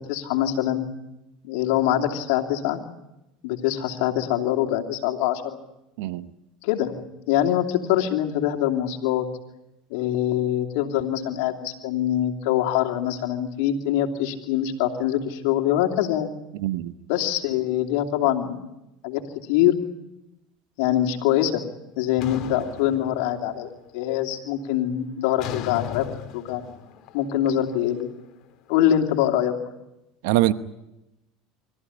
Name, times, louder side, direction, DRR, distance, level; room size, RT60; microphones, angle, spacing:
voice 1, 0.1-0.9 1.4-2.8 3.4-5.6 6.6-9.2 9.9-16.3 17.1-18.7 19.0-19.2 19.5-19.8 20.8-21.6 22.0-26.0 26.3-26.6 27.1-28.1 28.7-29.5, left 11 dB, 75° left, 2.9 m, -24 dB
voice 2, 16.6-16.9 30.2-30.5, right 15 dB, 75° right, 1.0 m, -22 dB
sound 1, 22.2-23.7 24.1-24.5 25.4-28.5, left 11 dB, 60° left, 2.2 m, -37 dB
25.5 x 14.5 x 10.0 m
supercardioid pair, 95°, 0 cm